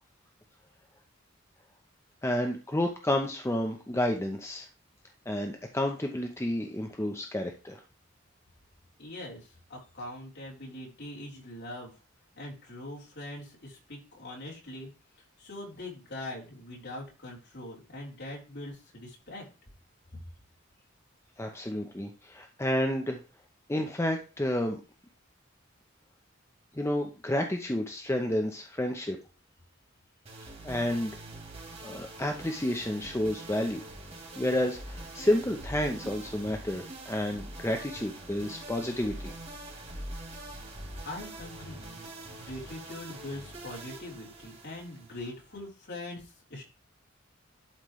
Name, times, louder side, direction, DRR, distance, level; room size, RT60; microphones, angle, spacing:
voice 1, 2.2-4.7 5.3-7.8 21.4-23.2 23.7-24.8 26.7-29.2 30.6-31.2 31.8-33.8 34.3-39.3, left 1 dB, 15° left, 3 dB, 0.7 m, -30 dB
voice 2, 9.0-11.9 12.3-14.9 15.4-19.5 41.0-46.6, left 1 dB, 55° left, -4 dB, 3.8 m, -42 dB
sound 1, 30.2-45.6, right 1 dB, 35° right, 3.4 m, -44 dB
11.5 x 5.2 x 3.1 m, 0.34 s
head